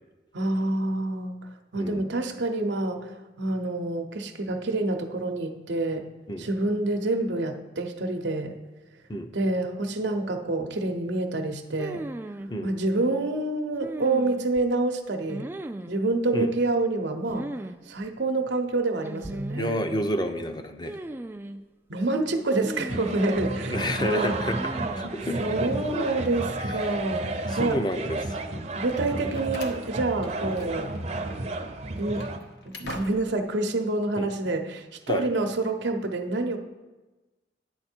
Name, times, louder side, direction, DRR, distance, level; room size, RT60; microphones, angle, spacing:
voice 1, 0.3-6.1 6.4-8.6 9.3-12.1 12.6-15.5 15.9-17.5 17.9-19.8 21.9-24.4 25.4-27.8 28.8-31.0 32.0-32.3 32.7-36.6, right 2 dB, 90° right, 4 dB, 0.8 m, -27 dB
voice 2, 1.7-2.1 6.3-6.5 9.1-9.3 12.5-12.7 16.3-16.5 19.6-20.9 23.7-24.6 25.0-26.1 26.6-26.7 27.5-28.2 34.2-34.3 35.1-35.2, left 1 dB, 25° left, 7 dB, 0.6 m, -30 dB
sound 1, 11.8-12.5 13.8-14.6 15.3-16.0 17.3-17.8 18.0-18.1 19.0-19.7 20.8-21.6 22.6-23.4 24.4-25.2, right 1 dB, 10° right, 0.3 m, -36 dB
sound 2, 22.9-32.4, right 2 dB, 40° right, 0.7 m, -32 dB
Slam, 29.0-31.0 31.2-31.4 31.9-33.5, left 2 dB, 75° left, 0.8 m, -44 dB
9.8 x 7.3 x 4.5 m, 1.2 s
head